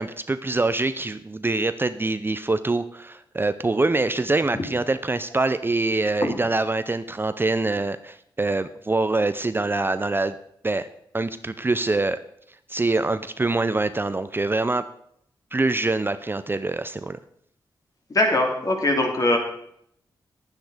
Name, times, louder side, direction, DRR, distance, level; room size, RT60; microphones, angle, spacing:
voice 1, 0.0-10.4 10.6-10.9 11.1-12.2 12.7-14.8 15.5-17.2, right 2 dB, 25° right, 12 dB, 0.5 m, -24 dB
voice 2, 18.1-19.4, left 1 dB, 45° left, 2 dB, 2.8 m, -21 dB
10.5 x 9.3 x 5.0 m, 0.70 s
cardioid pair, 70°, 9 cm